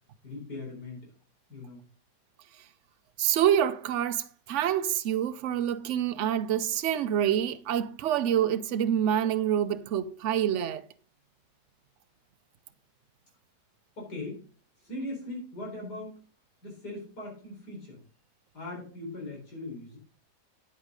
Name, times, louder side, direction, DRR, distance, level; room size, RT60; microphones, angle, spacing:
voice 1, 0.2-1.1 1.5-1.8 14.0-14.4 14.8-16.2 16.6-18.0 18.5-20.0, left 2 dB, 80° left, 4.8 m, -39 dB
voice 2, 3.2-10.8, right 10 dB, 60° right, 0.8 m, -27 dB
9.1 x 8.3 x 3.7 m
omnidirectional pair, 1.7 m